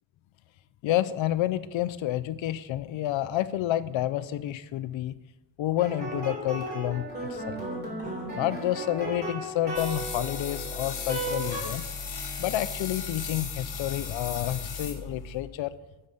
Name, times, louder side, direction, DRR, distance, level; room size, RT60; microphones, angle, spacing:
voice 1, 0.8-5.1 5.6-7.6 8.3-11.9 12.4-15.7, left 13 dB, 80° left, 15 dB, 0.6 m, -29 dB
sound 1, 5.8-11.6, right 1 dB, 20° right, 3.5 m, -35 dB
sound 2, 9.7-15.4, left 5 dB, 55° left, 1.6 m, -36 dB
9.6 x 6.7 x 5.7 m, 1.1 s
wide cardioid pair, 170°, 46 cm